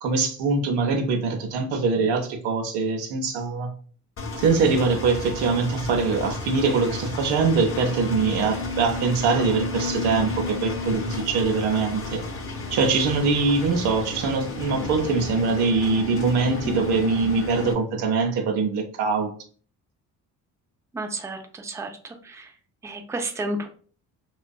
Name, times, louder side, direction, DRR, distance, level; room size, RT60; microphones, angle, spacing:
voice 1, 0.0-3.7 4.4-12.2 12.7-19.3, right 4 dB, 85° right, 0.6 m, -23 dB
Engine, 4.2-17.7, left 3 dB, 35° left, 0.6 m, -32 dB
voice 2, 20.9-22.5 22.8-23.7, right 2 dB, 10° right, 0.4 m, -32 dB
2.5 x 2.2 x 2.2 m
supercardioid pair, 60°, 37 cm